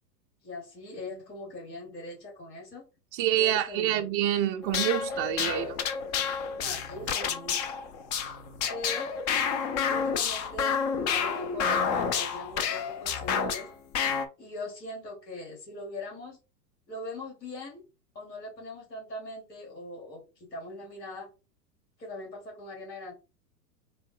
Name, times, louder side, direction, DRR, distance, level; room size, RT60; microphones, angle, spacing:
voice 1, 0.4-2.8 3.3-4.1 6.4-7.8 8.7-9.1 9.9-13.7 14.4-16.4 16.9-17.8 18.1-20.2 20.5-21.3 22.0-23.1, left 1 dB, 80° left, 2.1 m, -41 dB
voice 2, 3.1-5.8, right 11 dB, 35° right, 0.4 m, -27 dB
sound 1, 4.6-13.7 13.9-14.3, left 6 dB, 30° left, 0.3 m, -29 dB
4.1 x 2.0 x 3.6 m
hypercardioid pair, 100°, 49 cm